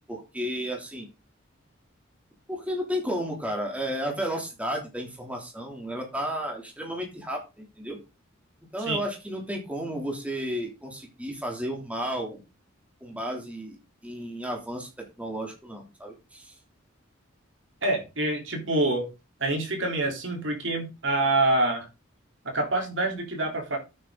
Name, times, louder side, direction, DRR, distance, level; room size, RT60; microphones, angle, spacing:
voice 1, 0.1-1.1 2.5-8.0 8.7-12.4 13.0-13.8 14.0-16.5, equal, 5° right, 0 dB, 3.3 m, -33 dB
voice 2, 17.8-19.1 19.4-21.9 22.4-23.8, right 2 dB, 65° right, 2 dB, 4.0 m, -26 dB
9.6 x 9.5 x 4.0 m, 0.28 s
head